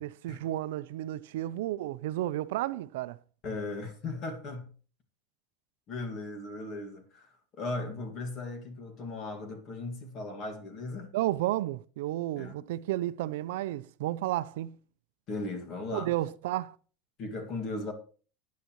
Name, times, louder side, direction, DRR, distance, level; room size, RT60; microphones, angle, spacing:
voice 1, 0.0-3.2 11.1-14.7 15.9-16.8, right 15 dB, 80° right, 0.5 m, -32 dB
voice 2, 3.4-4.7 5.9-11.1 12.4-12.5 15.3-16.1 17.2-17.9, left 2 dB, 35° left, 2.0 m, -37 dB
14.5 x 9.4 x 3.1 m
supercardioid pair, 175°, 0 cm